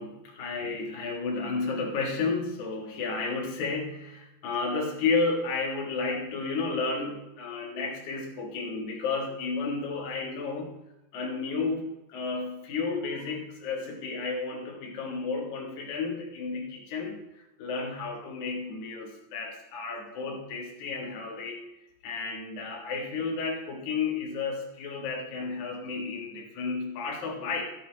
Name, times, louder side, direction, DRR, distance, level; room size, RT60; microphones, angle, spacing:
voice 1, 0.0-10.8 11.1-21.6 22.0-27.6, left 4 dB, 55° left, -1 dB, 2.3 m, -32 dB
18.0 x 6.6 x 2.9 m, 0.92 s
omnidirectional pair, 5.2 m